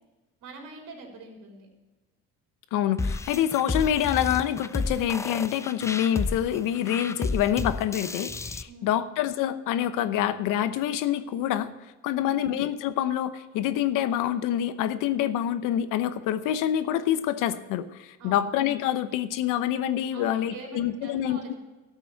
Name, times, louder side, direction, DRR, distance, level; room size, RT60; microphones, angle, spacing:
voice 1, 0.4-1.7 8.7-9.1 12.1-12.5 18.2-18.5 20.1-21.6, right 3 dB, 65° right, 0 dB, 3.5 m, -44 dB
voice 2, 2.7-11.7 12.0-21.5, left 11 dB, 75° left, 12 dB, 0.9 m, -26 dB
sound 1, 3.0-8.6, left 3 dB, 10° left, 0.4 m, -32 dB
13.0 x 6.1 x 7.7 m, 1.2 s
cardioid pair, 115°, 32 cm